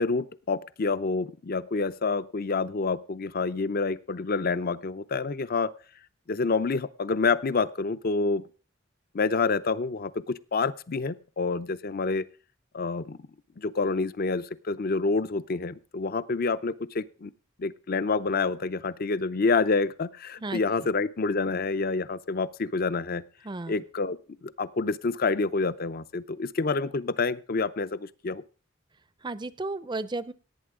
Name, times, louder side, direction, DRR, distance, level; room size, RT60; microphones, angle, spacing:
voice 1, 0.0-5.7 6.3-8.4 9.1-12.3 12.7-13.2 13.6-17.3 17.6-23.2 23.7-28.4, left 4 dB, 50° left, 14 dB, 0.6 m, -28 dB
voice 2, 29.2-30.3, right 2 dB, 20° right, 16 dB, 0.5 m, -33 dB
18.0 x 8.8 x 3.7 m, 0.37 s
head